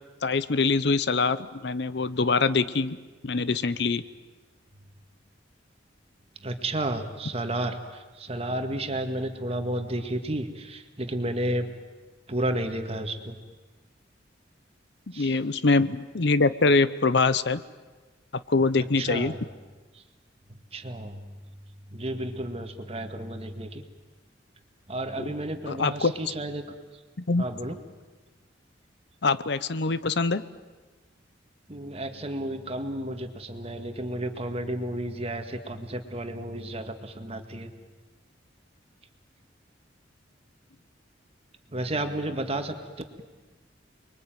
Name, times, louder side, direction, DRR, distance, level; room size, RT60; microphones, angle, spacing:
voice 1, 0.2-3.0 3.2-4.0 15.1-17.6 18.3-19.3 25.2-25.3 25.7-26.1 27.3-27.5 29.2-30.4, left 3 dB, 60° left, 15 dB, 0.8 m, -24 dB
voice 2, 6.4-11.7 12.3-13.4 15.1-15.4 19.0-19.4 19.9-20.0 20.7-21.2 21.9-23.8 24.9-26.6 27.4-27.8 31.7-37.7 41.7-43.2, right 1 dB, 35° right, 7 dB, 2.0 m, -32 dB
29.5 x 22.0 x 9.2 m, 1.3 s
head